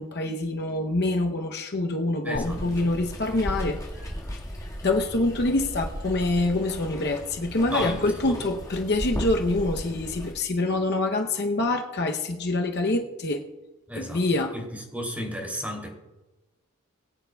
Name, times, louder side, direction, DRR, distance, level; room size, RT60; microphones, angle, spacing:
voice 1, 0.0-3.8 4.8-13.4 14.0-14.5, left 2 dB, 50° left, 3 dB, 0.7 m, -26 dB
voice 2, 2.2-2.9 7.7-8.4 13.9-14.2 14.5-15.9, equal, 5° right, -1 dB, 2.8 m, -34 dB
Water, 2.3-10.3, equal, 15° left, 1.7 m, -36 dB
22.0 x 9.3 x 2.3 m, 1.1 s
head